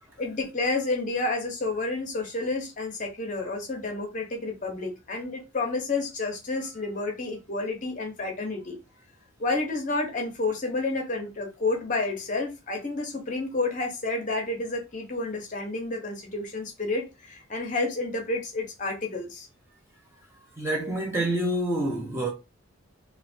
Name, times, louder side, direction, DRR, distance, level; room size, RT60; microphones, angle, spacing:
voice 1, 0.2-8.8 9.4-19.5, left 3 dB, 35° left, 0.7 m, -30 dB
voice 2, 20.6-22.3, right 1 dB, 10° right, 0.6 m, -27 dB
3.1 x 2.1 x 2.5 m
head